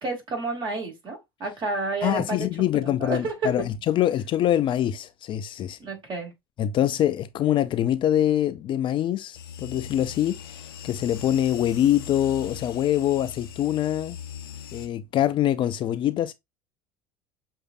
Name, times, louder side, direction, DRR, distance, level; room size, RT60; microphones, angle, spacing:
voice 1, 0.0-2.5 2.7-3.4 5.8-6.3, right 3 dB, 40° right, 2.4 m, -30 dB
voice 2, 2.0-5.8 6.6-14.2 14.7-16.3, left 11 dB, 45° left, 0.4 m, -24 dB
sound 1, 9.3-14.9, left 8 dB, 85° left, 0.6 m, -40 dB
6.4 x 2.5 x 2.4 m
hypercardioid pair, 75°, 12 cm